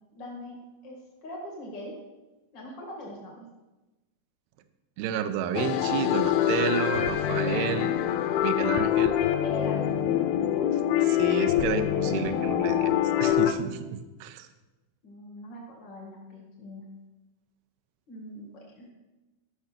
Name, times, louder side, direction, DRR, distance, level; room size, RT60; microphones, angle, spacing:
voice 1, 0.1-1.9 2.5-3.4 9.4-9.9 15.0-16.9 18.1-18.9, left 1 dB, 75° left, -1 dB, 1.0 m, -41 dB
voice 2, 5.0-7.9 8.4-9.1 11.0-14.5, right 8 dB, 80° right, 9 dB, 2.3 m, -31 dB
sound 1, 5.5-13.5, left 11 dB, 90° left, 3.0 m, -25 dB
13.5 x 6.0 x 5.9 m, 1.1 s
omnidirectional pair, 5.2 m